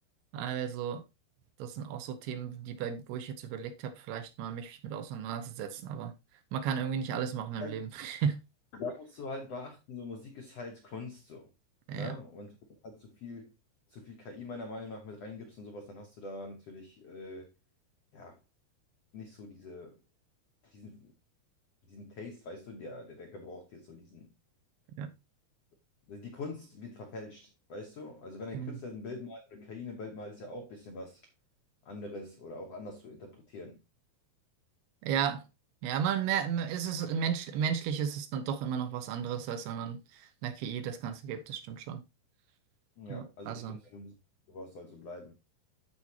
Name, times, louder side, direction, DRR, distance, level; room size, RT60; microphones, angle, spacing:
voice 1, 0.3-1.0 1.6-6.1 6.5-8.4 11.9-12.1 25.0-25.1 28.5-28.8 35.0-35.5 35.8-42.0 43.1-43.8, right 8 dB, 80° right, 2.9 m, -34 dB
voice 2, 8.7-11.5 11.9-12.6 12.8-13.5 13.9-17.5 18.1-18.4 19.1-20.0 20.6-21.1 21.9-24.3 26.1-31.2 31.8-33.8 36.3-36.4 43.0-44.1 44.5-45.3, left 3 dB, 75° left, 1.4 m, -44 dB
13.0 x 4.4 x 2.9 m
omnidirectional pair, 4.6 m